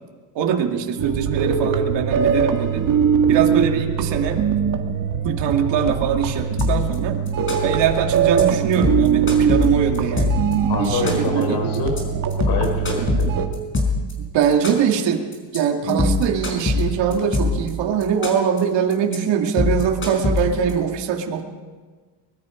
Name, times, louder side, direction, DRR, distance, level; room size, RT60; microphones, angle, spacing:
voice 1, 0.3-2.9 3.3-4.4 5.2-7.2 7.6-10.4 10.8-11.6 14.2-15.2 15.5-21.4, right 7 dB, 70° right, 3 dB, 2.3 m, -22 dB
sound 1, 1.0-13.5, right 7 dB, 45° right, 1.9 m, -22 dB
sound 2, 6.6-7.0 7.3-7.8 8.2-8.4 8.7-10.5 10.8-11.4 11.7-12.0 12.3-14.1 14.4-15.0 15.3-15.6 15.9-17.7 18.0-18.6 18.9-19.2 19.5-20.7, left 3 dB, 25° left, 5.0 m, -22 dB
voice 2, 10.7-12.0 12.4-13.3 15.8-16.2, left 3 dB, 60° left, 3 dB, 4.4 m, -25 dB
23.5 x 21.5 x 5.1 m, 1.4 s
cardioid pair, 140°, 45 cm